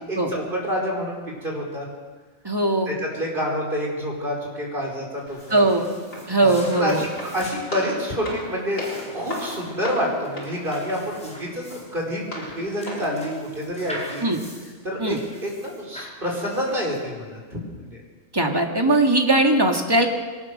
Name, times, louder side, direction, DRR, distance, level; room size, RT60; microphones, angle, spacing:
voice 1, 0.0-1.9 2.9-5.6 6.4-8.8 9.1-11.6 11.9-14.3 14.8-15.2 15.4-18.0, equal, 40° right, -1 dB, 5.3 m, -28 dB
voice 2, 2.4-2.9 5.5-5.9 6.3-7.0 14.2-14.4 15.0-15.2 18.3-20.1, right 2 dB, 15° right, 2 dB, 2.1 m, -19 dB
sound 1, 5.2-17.3, equal, 5° left, 4.8 m, -43 dB
Walk footsteps, 5.3-13.3, equal, 75° left, 5.2 m, -37 dB
22.5 x 18.5 x 6.6 m, 1.4 s
omnidirectional pair, 1.4 m